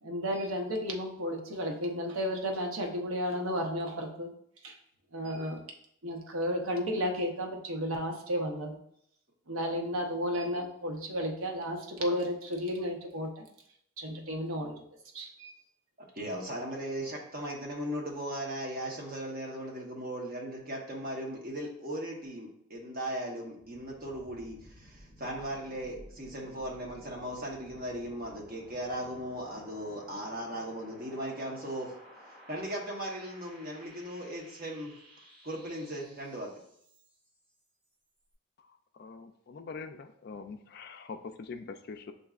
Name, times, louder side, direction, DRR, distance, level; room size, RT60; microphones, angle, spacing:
voice 1, 0.0-4.3 4.6-4.8 5.1-5.6 6.0-8.8 9.5-13.4 14.0-14.8 15.1-15.3, equal, 85° right, 2 dB, 0.8 m, -33 dB
voice 2, 16.1-32.0 32.5-34.9 35.4-36.5, right 1 dB, 45° right, -2 dB, 1.1 m, -38 dB
sound 1, 23.6-37.4, equal, 20° right, 1.5 m, -54 dB
voice 3, 39.0-42.1, left 4 dB, 50° left, 8 dB, 0.3 m, -43 dB
7.7 x 2.7 x 2.4 m, 0.69 s
head